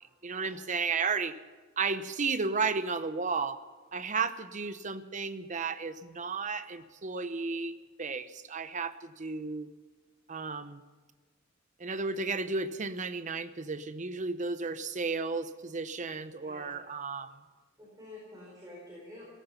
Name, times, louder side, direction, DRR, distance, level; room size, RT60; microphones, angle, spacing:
voice 1, 0.2-1.4 1.8-3.6 3.9-9.7 10.3-10.8 11.8-17.4, right 4 dB, 40° right, 12 dB, 0.8 m, -33 dB
voice 2, 17.8-19.2, left 1 dB, 20° right, -4 dB, 4.6 m, -49 dB
17.0 x 14.5 x 5.8 m, 1.4 s
head